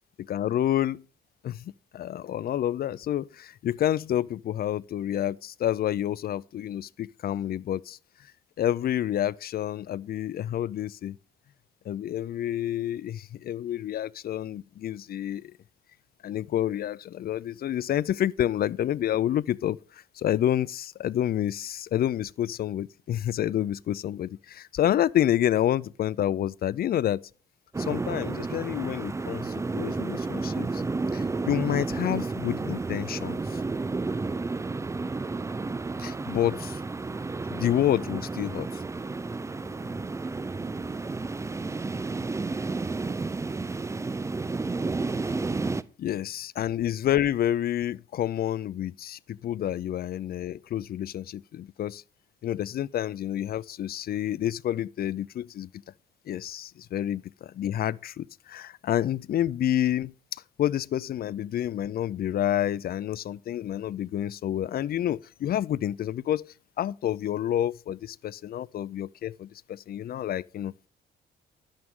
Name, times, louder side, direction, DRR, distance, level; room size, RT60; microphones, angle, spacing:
voice 1, 0.3-1.0 1.4-8.0 8.6-11.2 11.9-15.5 16.2-27.2 27.8-30.8 31.1-33.6 36.0-36.8 37.5-38.8 39.8-39.9 46.0-52.0 52.4-55.7 56.3-66.4 66.8-70.9, left 11 dB, 50° left, 0.4 m, -29 dB
sound 1, 27.7-45.8, right 3 dB, 15° right, 0.4 m, -31 dB
11.0 x 8.8 x 3.7 m
cardioid pair, 90°, 20 cm